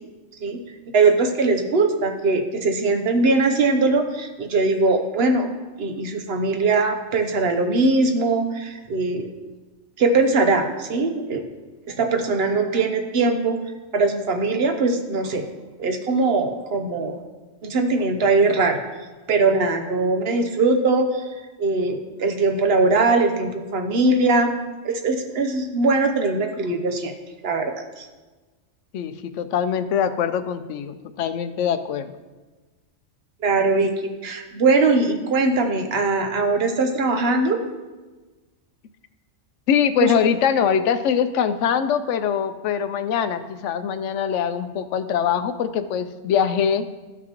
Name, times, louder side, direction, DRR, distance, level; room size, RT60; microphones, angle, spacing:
voice 1, 0.9-5.5 5.8-9.3 10.0-11.4 11.9-13.6 13.9-15.4 15.8-17.1 17.6-18.8 19.3-21.3 21.6-24.5 24.8-27.1 27.4-28.1 33.4-33.9 34.2-37.6 40.0-40.1, right 3 dB, 60° right, 5 dB, 1.0 m, -21 dB
voice 2, 28.9-32.1 39.7-46.8, left 8 dB, 80° left, 11 dB, 0.9 m, -23 dB
14.0 x 6.1 x 3.0 m, 1.2 s
omnidirectional pair, 1.2 m